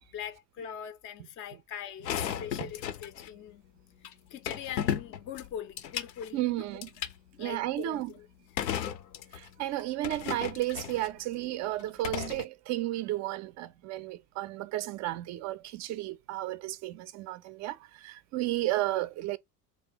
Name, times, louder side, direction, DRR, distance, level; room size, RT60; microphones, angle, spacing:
voice 1, 0.1-3.6 4.3-6.6 7.4-8.3 9.6-9.7, left 9 dB, 30° left, 0.4 m, -42 dB
sound 1, 2.0-3.3 4.0-4.1 4.5-6.3 6.8-7.1 8.6-9.5 9.8-11.1 11.8-12.4, left 10 dB, 80° left, 0.6 m, -34 dB
voice 2, 2.4-2.7 6.3-6.9 7.4-8.1 9.3-19.4, right 15 dB, 35° right, 0.4 m, -33 dB
3.4 x 2.3 x 3.8 m
figure-of-eight pair, 60°, 49 cm